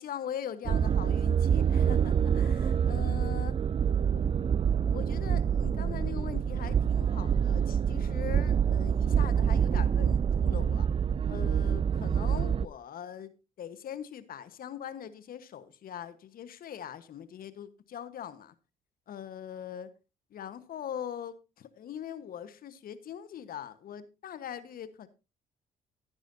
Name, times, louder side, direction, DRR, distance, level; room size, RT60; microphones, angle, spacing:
voice 1, 0.0-3.5 3.9-10.9 11.3-13.3 13.6-18.5 19.1-19.9 20.3-25.1, left 9 dB, 60° left, 1.2 m, -42 dB
sound 1, 0.6-12.7, right 8 dB, 35° right, 0.4 m, -26 dB
15.0 x 9.7 x 2.7 m
hypercardioid pair, 55°, 17 cm